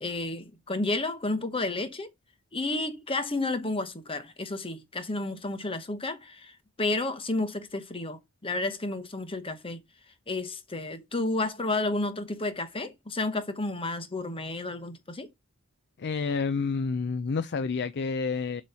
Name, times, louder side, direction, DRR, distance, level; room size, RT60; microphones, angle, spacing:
voice 1, 0.0-2.1 2.5-9.8 10.3-15.3, left 2 dB, 25° left, 1.1 m, -31 dB
voice 2, 16.0-18.6, left 4 dB, 50° left, 0.5 m, -29 dB
8.1 x 3.1 x 5.5 m
head